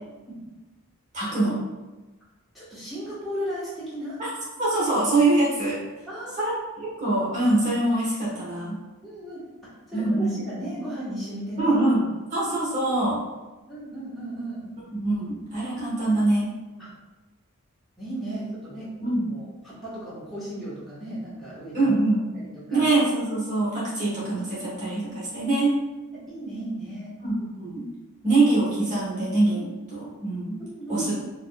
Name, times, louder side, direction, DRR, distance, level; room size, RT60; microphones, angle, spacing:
voice 1, 1.1-1.6 4.2-4.3 4.6-5.8 6.4-6.5 7.0-8.8 9.9-10.3 11.6-12.0 12.3-13.2 14.9-16.5 19.0-19.3 21.7-22.3 22.7-25.8 27.2-27.8 28.2-30.6 30.9-31.1, right 2 dB, 35° right, -8 dB, 1.2 m, -24 dB
voice 2, 2.5-4.2 6.1-6.6 9.0-9.4 9.9-11.8 13.7-14.6 16.8-16.9 18.0-18.9 19.2-21.9 22.7-22.8 26.3-27.1 30.7-31.1, right 1 dB, ahead, -11 dB, 1.2 m, -35 dB
4.1 x 2.9 x 2.2 m, 1.1 s
head